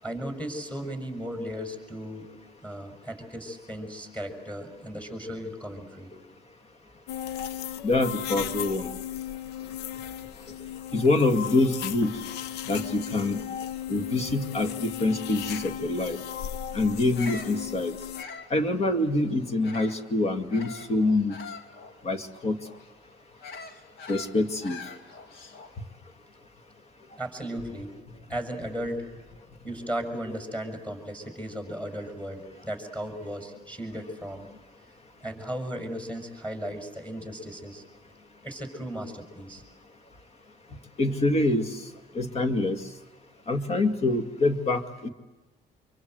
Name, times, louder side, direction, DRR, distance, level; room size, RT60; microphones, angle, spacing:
voice 1, 0.0-2.3 2.6-6.1 10.5-10.6 27.2-28.0 28.3-29.1 29.6-34.5 35.2-37.8 38.4-39.6, equal, 10° left, 5 dB, 6.6 m, -36 dB
sound 1, 7.1-18.2, left 10 dB, 85° left, 0.8 m, -36 dB
voice 2, 7.8-8.9 10.9-12.1 12.7-13.4 13.9-16.2 16.7-17.9 18.5-21.4 22.0-22.6 24.1-24.8 41.0-41.8 42.1-42.8 43.5-45.1, left 2 dB, 40° left, 8 dB, 2.1 m, -25 dB
Bird vocalization bird call bird song, 17.0-20.1 20.5-25.8, left 4 dB, 65° left, 2.7 m, -44 dB
25.5 x 24.5 x 7.9 m, 1.2 s
cardioid pair, 110°, 17 cm